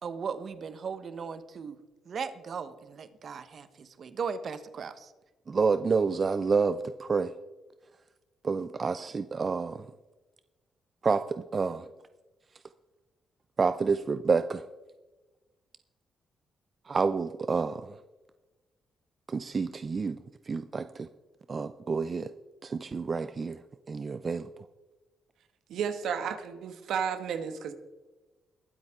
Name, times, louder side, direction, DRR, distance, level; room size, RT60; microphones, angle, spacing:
voice 1, 0.0-1.8 2.1-5.1, right 6 dB, 60° right, 12 dB, 1.2 m, -37 dB
voice 2, 5.5-7.3 8.4-9.9 11.0-11.9 13.6-14.6 16.9-18.0 19.3-20.2 20.5-21.1 21.5-22.3 22.6-23.6 23.9-24.5, right 4 dB, 45° right, 11 dB, 0.6 m, -28 dB
voice 3, 25.7-27.7, right 7 dB, 80° right, 9 dB, 1.3 m, -32 dB
21.5 x 8.0 x 3.7 m, 1.2 s
supercardioid pair, 65°, 0 cm